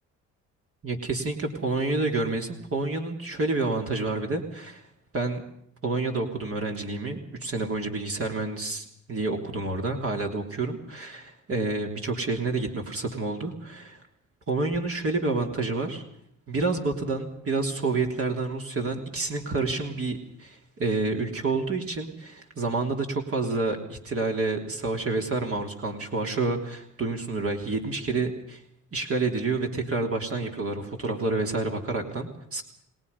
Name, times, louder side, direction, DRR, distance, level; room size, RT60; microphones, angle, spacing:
voice 1, 0.8-4.8 5.1-5.4 5.8-14.0 14.5-16.0 16.5-28.6 28.9-32.6, right 3 dB, 50° right, 2 dB, 3.5 m, -29 dB
29.5 x 19.5 x 5.5 m, 0.69 s
cardioid pair, 90°, 30 cm